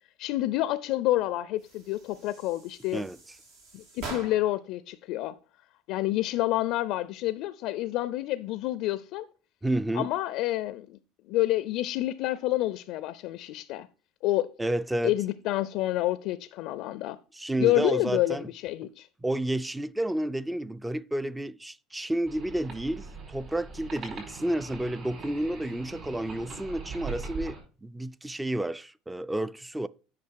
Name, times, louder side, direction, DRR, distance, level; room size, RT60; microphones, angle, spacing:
voice 1, 0.2-3.0 3.7-5.4 5.9-9.3 9.9-11.0 11.3-13.9 14.2-14.5 15.0-17.2 17.6-19.1, left 15 dB, 65° left, 0.4 m, -28 dB
sound 1, 1.6-4.7, right 3 dB, 80° right, 3.2 m, -44 dB
voice 2, 9.6-10.1 14.6-15.1 17.3-18.5 19.2-29.9, right 1 dB, 10° right, 0.4 m, -30 dB
sound 2, 22.3-27.6, right 4 dB, 50° right, 4.8 m, -41 dB
8.6 x 6.0 x 4.6 m
supercardioid pair, 105°, 0 cm